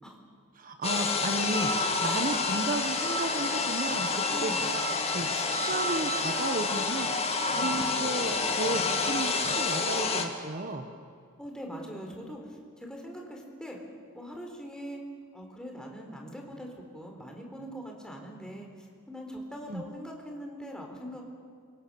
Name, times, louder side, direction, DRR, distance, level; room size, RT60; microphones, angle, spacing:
voice 1, 0.5-4.8 5.1-10.9 19.7-19.8, right 2 dB, 40° right, 6 dB, 1.3 m, -34 dB
sound 1, 0.8-10.3, left 3 dB, 30° left, 2.2 m, -28 dB
voice 2, 4.3-4.6 7.5-7.7 11.4-12.4 12.8-13.8 14.1-15.0 15.3-18.7 19.1-21.2, equal, 5° left, 1 dB, 4.3 m, -42 dB
28.0 x 25.0 x 7.1 m, 2.2 s
head